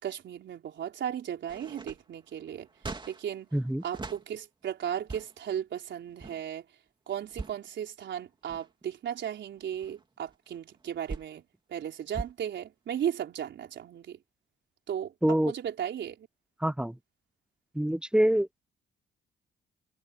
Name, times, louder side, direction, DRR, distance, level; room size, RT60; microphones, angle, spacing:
voice 1, 0.0-2.7 3.1-3.5 3.8-6.6 7.1-11.4 11.7-14.2 14.9-15.1 15.5-16.3, right 9 dB, 65° right, 4.3 m, -35 dB
sound 1, 1.5-4.2 4.9-5.5 6.1-6.4 7.2-7.7 8.3-8.8 9.4-11.4 12.1-12.3, right 3 dB, 25° right, 2.6 m, -41 dB
voice 2, 3.5-3.8 15.2-15.5 16.6-16.9 17.8-18.5, equal, 5° right, 0.7 m, -25 dB
cardioid pair, 90°, 20 cm